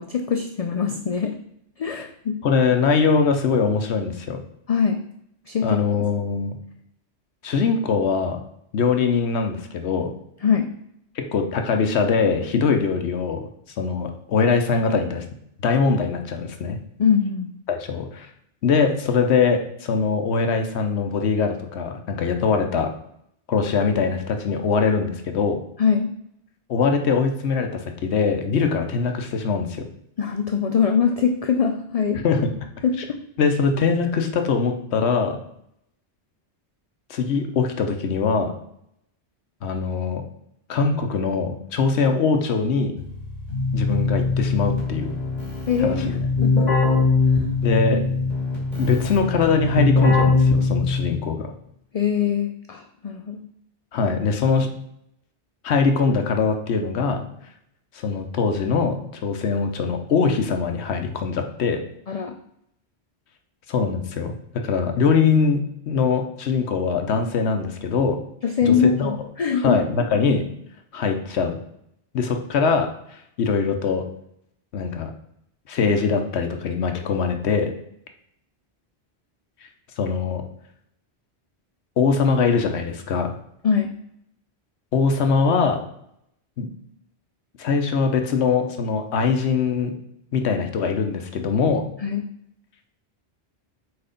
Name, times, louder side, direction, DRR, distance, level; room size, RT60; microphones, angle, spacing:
voice 1, 0.0-1.3 1.8-2.4 4.7-5.0 5.5-5.8 10.4-10.7 17.0-17.5 25.8-26.1 30.2-32.2 32.8-33.2 45.7-46.1 46.4-46.7 47.3-47.5 51.9-53.4 62.1-62.3 68.4-69.8 83.6-83.9 92.0-92.2, left 6 dB, 55° left, 4 dB, 0.4 m, -22 dB
voice 2, 2.4-4.4 5.6-6.6 7.4-8.4 8.7-10.1 11.2-13.5 13.8-15.2 15.6-16.8 17.7-18.3 18.6-22.9 23.5-25.6 26.7-29.9 32.2-32.5 33.4-35.4 37.1-38.5 39.6-40.2 40.7-42.9 43.7-45.2 45.8-46.2 47.6-48.0 48.8-51.5 53.9-54.7 55.6-57.2 57.9-59.0 59.2-61.8 63.7-64.3 64.6-68.2 68.7-69.2 69.6-70.4 70.9-71.6 72.1-74.0 74.7-75.1 75.7-77.7 80.0-80.4 82.0-83.3 84.9-85.8 86.6-86.7 87.6-89.9 90.3-91.9, left 5 dB, 80° left, 5 dB, 1.0 m, -22 dB
Keyboard (musical), 43.0-51.3, left 3 dB, 40° left, 2.6 m, -22 dB
4.7 x 4.3 x 5.0 m, 0.74 s
omnidirectional pair, 1.1 m